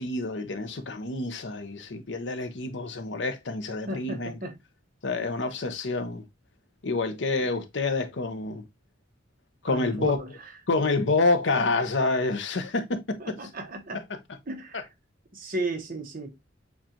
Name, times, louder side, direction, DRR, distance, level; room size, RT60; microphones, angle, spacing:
voice 1, 0.0-4.3 5.0-6.2 6.8-8.6 9.6-10.2 10.7-13.4 14.7-14.8, left 3 dB, 70° left, 0.8 m, -27 dB
voice 2, 3.9-4.5 7.4-7.5 9.7-10.3 13.2-14.0 14.5-14.9 15.3-16.4, right 2 dB, 50° right, 1.2 m, -34 dB
7.3 x 2.5 x 2.8 m
head